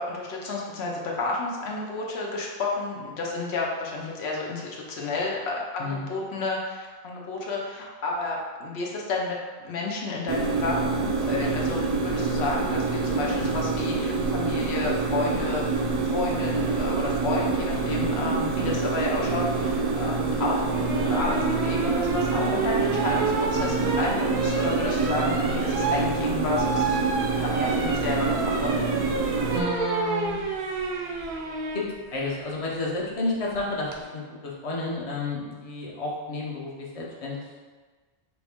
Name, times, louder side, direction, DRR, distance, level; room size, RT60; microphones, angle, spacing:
voice 1, 0.0-9.4 9.6-20.6 21.0-27.0 27.4-28.7, left 3 dB, 85° left, -2 dB, 1.0 m, -31 dB
sound 1, 10.3-29.6, right 4 dB, 50° right, 0.5 m, -26 dB
sound 2, 20.7-31.9 33.5-34.0, right 4 dB, 80° right, 0.8 m, -30 dB
voice 2, 29.5-30.4 31.7-37.4, left 2 dB, 40° left, -3 dB, 0.7 m, -31 dB
4.3 x 2.5 x 3.5 m, 1.4 s
omnidirectional pair, 1.1 m